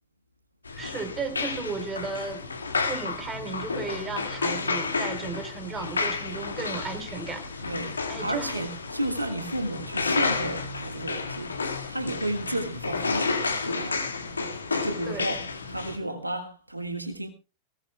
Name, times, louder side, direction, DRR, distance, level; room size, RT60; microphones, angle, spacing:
sound 1, 0.6-16.0, left 4 dB, 75° left, 2.0 m, -31 dB
voice 1, 0.7-2.5 2.9-7.4 8.1-8.6 15.1-15.3, right 4 dB, 20° right, 3.5 m, -35 dB
voice 2, 7.6-11.5 11.9-14.0 14.4-15.4 15.7-17.3, right 1 dB, 85° right, 1.7 m, -33 dB
22.0 x 18.0 x 2.2 m
figure-of-eight pair, 90°, 0 cm